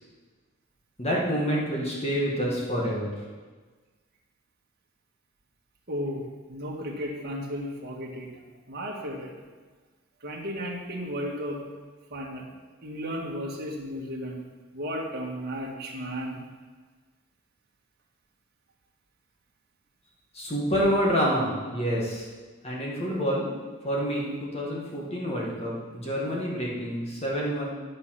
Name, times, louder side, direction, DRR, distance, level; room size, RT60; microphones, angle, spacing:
voice 1, 1.0-3.1 20.3-22.3 22.6-23.5 23.8-27.7, equal, 30° left, -4 dB, 1.8 m, -27 dB
voice 2, 5.9-8.3 8.7-9.3 10.2-11.6 12.1-12.5 12.8-14.4 14.7-16.5, equal, 50° right, -1 dB, 1.8 m, -34 dB
10.0 x 7.5 x 5.9 m, 1.4 s
head